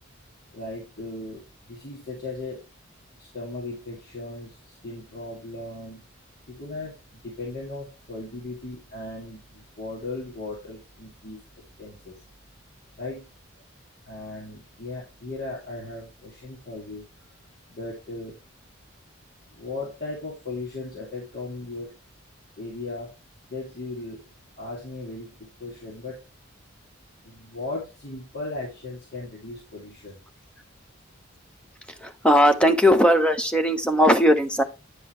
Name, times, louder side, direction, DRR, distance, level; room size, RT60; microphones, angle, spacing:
voice 1, 0.5-2.6 3.2-6.0 6.5-11.4 11.8-12.2 13.0-13.3 14.1-17.0 17.7-18.4 19.5-21.9 22.6-23.1 23.5-24.2 24.6-26.2 27.2-30.2, left 2 dB, 50° left, -4 dB, 2.5 m, -37 dB
voice 2, 32.0-34.6, equal, 5° left, 7 dB, 0.8 m, -18 dB
9.4 x 5.7 x 3.2 m, 0.27 s
head